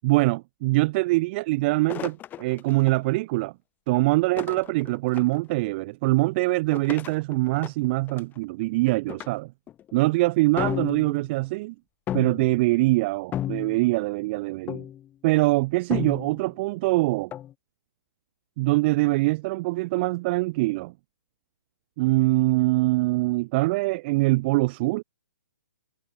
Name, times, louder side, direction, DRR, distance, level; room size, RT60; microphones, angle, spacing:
voice 1, 0.0-3.5 3.9-9.5 9.9-11.7 12.1-14.8 15.2-17.3 18.6-20.9 22.0-25.0, right 22 dB, 40° right, 7.4 m, -23 dB
sound 1, 1.9-3.0 4.4-5.4 6.7-8.4 9.1-9.3 9.7-9.9 10.6-11.3 12.1-12.6 13.3-14.0 14.7-15.1 15.9-16.5 17.3-17.5, left 11 dB, 20° left, 3.0 m, -33 dB
hypercardioid pair, 130°, 10 cm